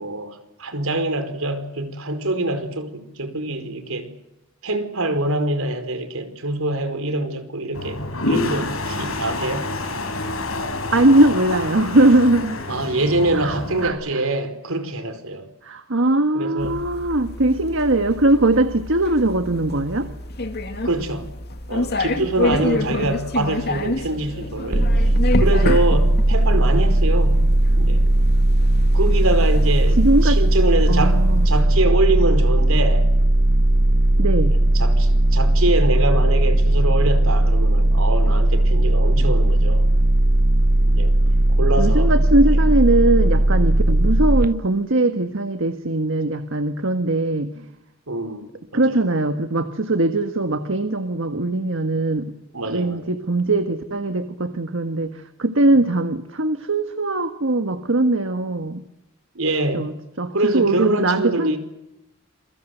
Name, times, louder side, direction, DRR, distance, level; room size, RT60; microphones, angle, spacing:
voice 1, 0.0-4.1 4.6-8.0 8.3-9.7 12.7-15.5 16.3-16.8 20.8-21.3 21.7-25.1 25.4-27.4 27.7-28.1 28.9-33.1 34.7-39.9 40.8-41.1 41.5-42.4 48.1-49.0 52.5-53.0 59.3-59.9 60.3-61.6, right 2 dB, 80° right, 4.8 m, -25 dB
Toilet flush, 7.7-13.9, left 2 dB, 75° left, 5.9 m, -28 dB
voice 2, 10.9-12.6 13.3-13.5 13.8-14.0 15.6-20.1 22.6-23.1 30.0-30.4 30.9-31.5 34.2-34.5 41.8-47.6 48.7-52.3 52.7-58.8 59.7-61.6, right 2 dB, 65° right, 1.5 m, -20 dB
sound 1, 16.6-31.6, left 2 dB, 50° left, 2.3 m, -29 dB
sound 2, 24.7-44.5, right 1 dB, 45° right, 0.9 m, -17 dB
28.0 x 23.5 x 8.0 m
head